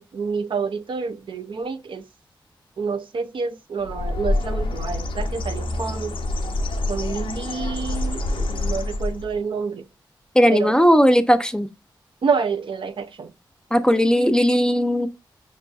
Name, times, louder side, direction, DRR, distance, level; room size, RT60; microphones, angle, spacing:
voice 1, 0.0-2.0 2.8-6.2 6.9-9.9 10.5-10.7 12.2-13.3, right 5 dB, 70° right, 0.5 m, -28 dB
Bird, 3.8-9.4, left 2 dB, 80° left, 0.5 m, -26 dB
voice 2, 10.3-11.7 13.7-15.1, equal, 10° left, 0.5 m, -17 dB
5.2 x 2.6 x 2.3 m
cardioid pair, 40°, 9 cm